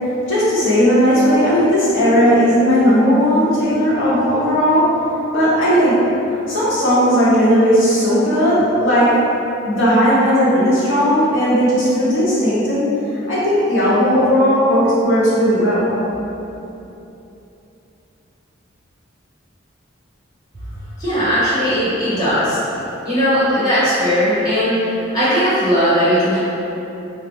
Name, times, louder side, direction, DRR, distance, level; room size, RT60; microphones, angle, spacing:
voice 1, 0.3-5.0 5.3-6.2 6.5-9.3 9.6-15.9, equal, 80° left, -10 dB, 0.9 m, -16 dB
voice 2, 21.0-22.6 23.0-24.9 25.1-26.4, equal, 20° left, -12 dB, 1.3 m, -17 dB
3.5 x 2.1 x 3.8 m, 3.0 s
head